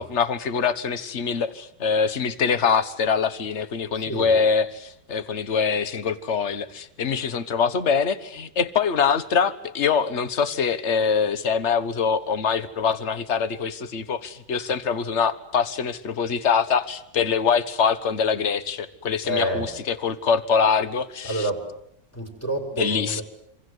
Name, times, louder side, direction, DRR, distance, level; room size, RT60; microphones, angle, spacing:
voice 1, 0.0-21.4 22.8-23.2, left 6 dB, 40° left, 1.4 m, -24 dB
voice 2, 3.9-4.4 19.2-19.8 21.2-21.7 22.1-23.2, equal, 5° left, 5.5 m, -28 dB
27.0 x 25.0 x 8.0 m
omnidirectional pair, 2.0 m